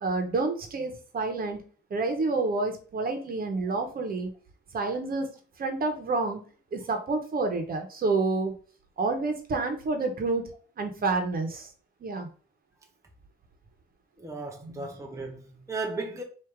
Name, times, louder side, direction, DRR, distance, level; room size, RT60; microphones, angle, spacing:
voice 1, 0.0-1.6 1.9-4.3 4.7-5.3 5.6-6.4 6.7-8.5 9.0-10.4 10.8-11.7 12.0-12.3 14.6-14.8, right 3 dB, 50° right, 1.2 m, -28 dB
voice 2, 14.2-16.2, right 3 dB, 15° right, 0.9 m, -36 dB
4.6 x 2.8 x 3.6 m
cardioid pair, 90°, 20 cm